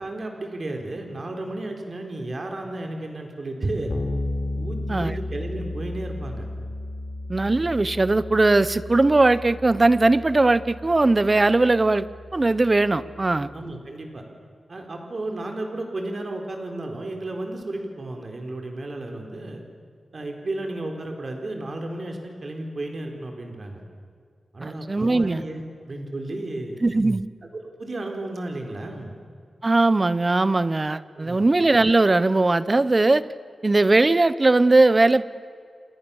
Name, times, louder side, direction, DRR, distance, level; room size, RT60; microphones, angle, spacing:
voice 1, 0.0-3.9 4.5-6.5 13.5-14.2 14.7-19.6 20.1-23.8 24.5-26.8 27.6-29.1 31.1-31.5, right 2 dB, 40° right, 3 dB, 4.3 m, -33 dB
Bass guitar, 3.9-13.5, left 2 dB, 35° left, 3.6 m, -34 dB
voice 2, 7.3-12.1 12.3-13.5 24.6-25.4 26.8-27.3 29.6-33.2 33.6-35.2, right 2 dB, 25° right, 16 dB, 0.9 m, -19 dB
29.5 x 27.5 x 7.2 m, 2.2 s
wide cardioid pair, 140°, 0 cm